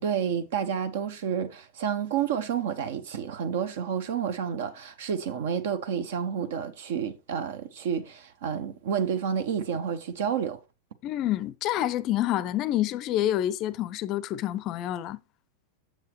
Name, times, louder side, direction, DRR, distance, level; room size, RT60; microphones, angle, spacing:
voice 1, 0.0-10.6, right 8 dB, 55° right, 0.8 m, -30 dB
voice 2, 11.0-15.2, left 13 dB, 35° left, 0.5 m, -28 dB
7.5 x 7.3 x 3.0 m
figure-of-eight pair, 90°, 0 cm